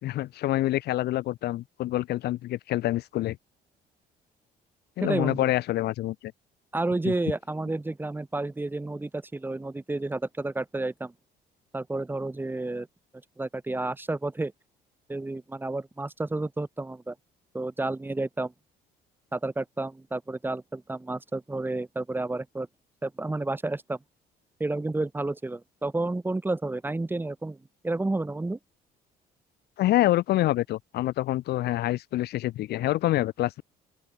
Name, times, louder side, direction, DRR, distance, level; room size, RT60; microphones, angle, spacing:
voice 1, 0.0-3.4 5.0-6.3 7.0-7.1 29.8-33.6, left 15 dB, 75° left, 2.2 m, -26 dB
voice 2, 5.0-5.5 6.7-11.1 11.7-12.9 13.4-14.5 15.1-17.1 17.5-18.5 19.3-22.7 23.0-24.0 24.6-27.6 27.8-28.6, right 2 dB, 10° right, 2.4 m, -30 dB
open air
cardioid pair, 110°, 17 cm